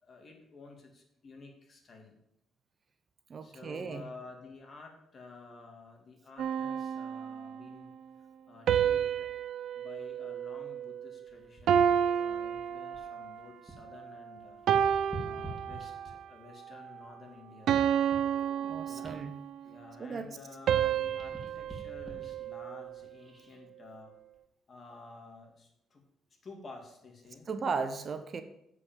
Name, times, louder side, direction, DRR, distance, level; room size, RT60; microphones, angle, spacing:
voice 1, 0.0-2.2 3.4-7.9 8.5-9.3 9.7-14.6 15.2-17.8 18.9-19.1 19.6-24.1 24.7-26.0 26.4-27.5, left 3 dB, 45° left, 2 dB, 2.3 m, -51 dB
voice 2, 3.3-4.0 18.7-19.3 20.0-20.3 27.5-28.4, right 5 dB, 45° right, 9 dB, 0.9 m, -36 dB
sound 1, 6.4-7.7 8.7-11.2 11.7-13.4 13.9-14.2 14.7-16.2 16.7-17.0 17.7-19.6 20.7-23.0, right 9 dB, 75° right, 0.5 m, -30 dB
sound 2, 11.3-14.0 14.3-16.4 17.0-20.5 20.8-23.6 24.2-24.4, right 2 dB, ahead, 2.9 m, -49 dB
8.1 x 5.1 x 7.5 m, 0.78 s
cardioid pair, 90°, 0 cm